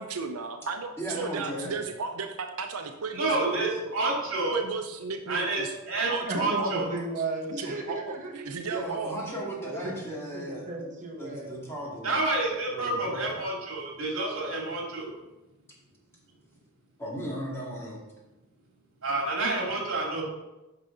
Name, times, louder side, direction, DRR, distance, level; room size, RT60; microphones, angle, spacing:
voice 1, 0.0-4.1 4.5-5.7 6.1-6.9 7.6-9.2, right 4 dB, 90° right, 0.6 m, -35 dB
voice 2, 1.0-1.7 8.7-10.6 11.2-12.1 12.7-13.2 17.0-18.0, right 1 dB, 10° left, 2.2 m, -36 dB
voice 3, 3.1-4.6 5.3-5.6 5.9-6.9 12.0-15.1 19.0-20.2, right 2 dB, 65° right, 2.5 m, -29 dB
voice 4, 6.2-8.5 9.6-11.6, right 2 dB, 35° right, 1.5 m, -34 dB
9.6 x 5.6 x 3.8 m
head